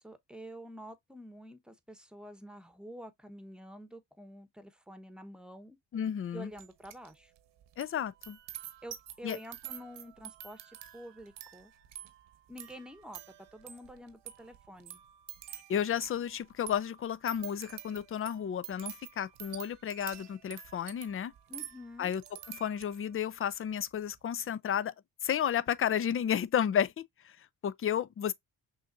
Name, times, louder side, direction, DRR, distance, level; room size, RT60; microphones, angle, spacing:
voice 1, 0.0-5.8 6.3-7.3 8.8-11.7 12.5-15.0 21.5-22.1, equal, ahead, 1.0 m, -48 dB
voice 2, 5.9-6.5 7.8-8.4 9.2-9.4 15.7-21.3 22.0-22.2 22.5-24.9 25.2-28.3, left 9 dB, 30° left, 0.4 m, -32 dB
sound 1, 6.6-7.1 7.4-23.1 23.5-23.9, right 11 dB, 70° right, 1.1 m, -48 dB
6.3 x 2.6 x 2.5 m
supercardioid pair, 55°, 44 cm